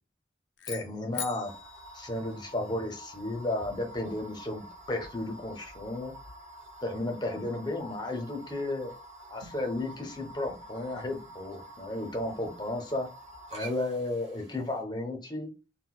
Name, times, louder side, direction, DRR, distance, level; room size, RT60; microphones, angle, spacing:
sound 1, 0.6-2.9, left 9 dB, 75° left, 0.4 m, -42 dB
voice 1, 0.7-1.5 1.9-6.1 6.8-8.9 9.3-13.1 13.5-15.5, left 2 dB, 25° left, 4 dB, 0.6 m, -33 dB
sound 2, 1.4-14.8, right 1 dB, 35° right, 1.0 m, -48 dB
3.9 x 2.1 x 2.3 m, 0.31 s
head